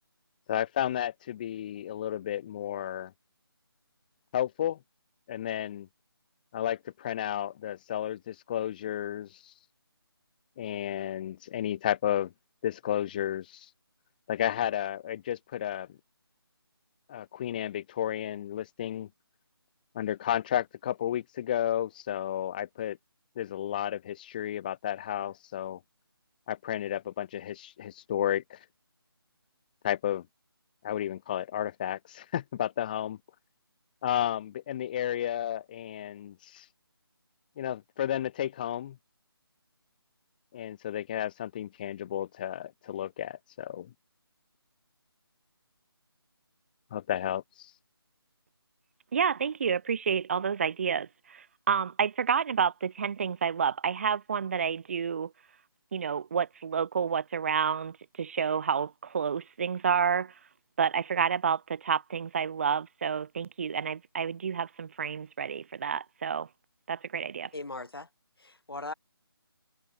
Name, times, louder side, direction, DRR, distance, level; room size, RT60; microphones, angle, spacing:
voice 1, 0.5-3.1 4.3-4.8 5.3-5.9 6.5-9.5 10.6-12.3 12.6-13.7 14.3-15.9 17.1-19.1 19.9-23.0 23.4-25.8 26.5-28.6 29.8-30.2 30.8-33.2 34.0-36.7 37.6-38.9 40.5-43.9 46.9-47.7, left 11 dB, 20° left, 1.3 m, -32 dB
voice 2, 49.1-55.3 55.9-60.3 60.8-66.5 66.9-67.5, right 7 dB, 30° right, 1.8 m, -29 dB
voice 3, 67.5-68.1 68.4-68.9, left 2 dB, 65° left, 4.0 m, -38 dB
figure-of-eight pair, 155°, 13 cm